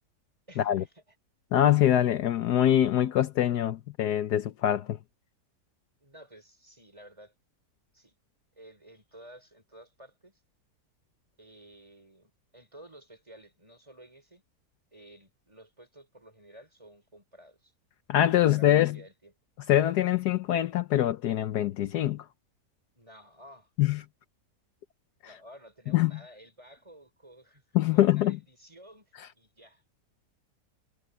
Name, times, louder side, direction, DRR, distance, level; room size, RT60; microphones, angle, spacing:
voice 1, 0.5-1.0 6.0-7.3 7.9-8.1 8.5-10.4 11.4-14.4 14.9-17.7 18.3-19.3 22.9-23.7 25.2-29.8, right 1 dB, 15° right, 4.7 m, -53 dB
voice 2, 1.5-5.0 18.1-19.0 19.7-22.2 23.8-24.0 25.9-26.1 27.7-28.4, left 12 dB, 70° left, 1.3 m, -24 dB
omnidirectional pair, 1.8 m